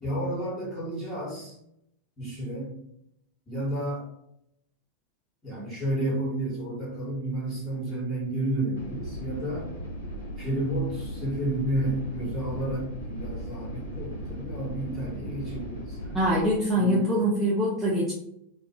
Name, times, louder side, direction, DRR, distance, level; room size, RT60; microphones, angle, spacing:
voice 1, 0.0-1.6 2.2-2.7 3.5-4.1 5.4-9.8 10.4-16.2 16.7-17.1, right 1 dB, 15° left, -7 dB, 1.4 m, -31 dB
sound 1, 8.8-16.4, right 1 dB, 70° left, 0.9 m, -37 dB
voice 2, 16.1-18.1, equal, 5° right, -7 dB, 0.6 m, -24 dB
2.3 x 2.1 x 2.9 m, 0.76 s
figure-of-eight pair, 90°, 0 cm